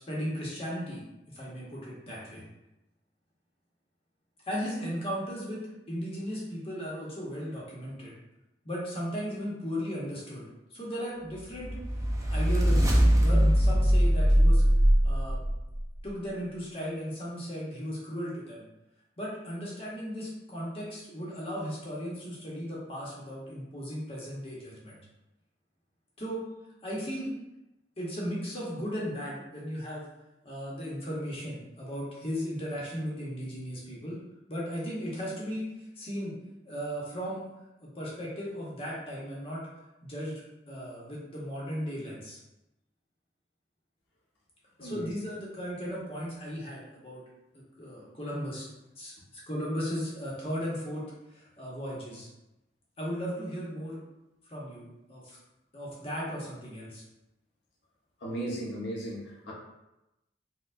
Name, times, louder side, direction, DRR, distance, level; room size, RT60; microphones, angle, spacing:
voice 1, 0.1-1.0 1.3-2.4 4.5-5.6 5.9-8.1 8.6-10.5 10.7-11.7 12.3-14.6 15.0-15.4 16.0-18.6 19.2-25.0 26.2-26.4 26.8-27.3 28.0-30.1 30.4-34.2 34.5-35.7 36.0-36.3 36.6-37.5 37.8-39.6 40.0-42.4 44.8-47.2 47.5-48.7 49.0-52.3 53.0-54.0 54.5-55.4 55.7-57.0, equal, 35° left, -5 dB, 0.9 m, -36 dB
sound 1, 11.6-15.8, equal, 20° right, 0.4 m, -22 dB
voice 2, 58.2-59.5, right 1 dB, 90° left, -5 dB, 1.0 m, -36 dB
4.3 x 2.3 x 2.5 m, 0.94 s
head